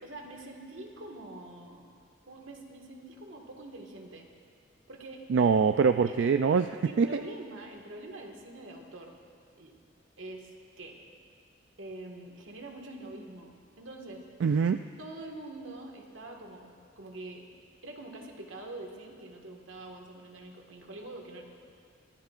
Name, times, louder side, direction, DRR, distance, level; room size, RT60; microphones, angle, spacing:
voice 1, 0.0-1.9 2.3-4.3 4.9-5.3 5.9-6.2 6.7-9.1 9.6-9.8 10.2-11.0 11.8-14.3 15.0-17.5 17.8-21.4, right 2 dB, 90° right, 1 dB, 1.7 m, -45 dB
voice 2, 5.3-7.2 14.4-14.8, right 5 dB, 65° right, 8 dB, 0.3 m, -24 dB
23.5 x 15.5 x 2.5 m, 2.2 s
head